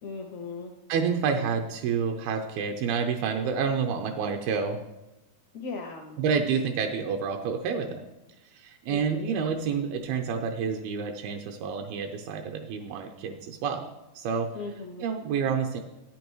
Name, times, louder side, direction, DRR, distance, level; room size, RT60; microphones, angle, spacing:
voice 1, 0.0-0.7 5.5-6.2 8.9-9.4 14.5-15.1, left 4 dB, 80° left, 2 dB, 1.5 m, -38 dB
voice 2, 0.9-4.8 6.2-8.1 8.5-13.9 14.2-14.5 15.0-15.8, right 6 dB, 85° right, 3 dB, 2.6 m, -29 dB
13.5 x 8.6 x 3.1 m, 0.97 s
omnidirectional pair, 4.3 m